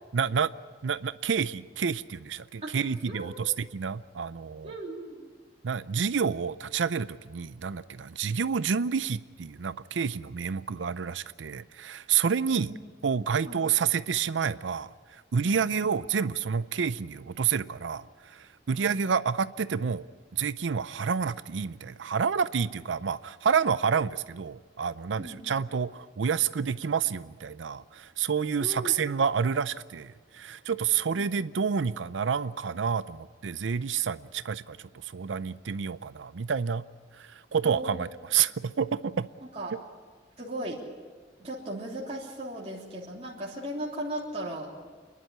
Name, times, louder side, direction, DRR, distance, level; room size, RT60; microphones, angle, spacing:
voice 1, 0.1-0.5 0.8-4.7 5.6-12.7 13.0-14.9 15.3-20.1 20.3-34.8 35.0-36.8 37.2-39.3, right 6 dB, 85° right, 0.5 m, -29 dB
voice 2, 2.6-3.4 4.6-5.3 12.5-12.7 13.5-13.6 15.4-15.7 18.8-18.9 25.2-25.4 28.6-29.0 31.1-31.3 37.6-38.1 39.5-39.8 40.4-40.8 41.4-44.7, right 1 dB, 35° right, 3.3 m, -37 dB
28.0 x 11.0 x 9.9 m
head